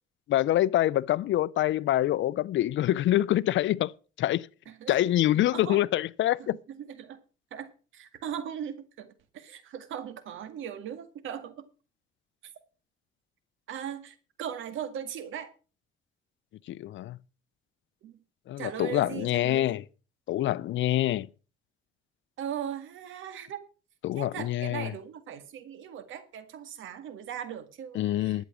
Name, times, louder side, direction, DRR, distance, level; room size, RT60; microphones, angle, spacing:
voice 1, 0.3-3.9 4.2-4.5 4.9-6.6 16.7-17.2 18.5-19.8 20.3-21.3 24.0-24.9 27.9-28.4, left 13 dB, 70° left, 0.6 m, -26 dB
voice 2, 4.7-5.1 5.5-5.8 6.4-6.5 6.8-7.2 7.5-11.7 13.7-15.5 18.0-18.2 18.6-19.7 22.4-23.6 24.2-28.5, right 9 dB, 80° right, 2.0 m, -39 dB
12.0 x 8.3 x 6.2 m
cardioid pair, 90°, 20 cm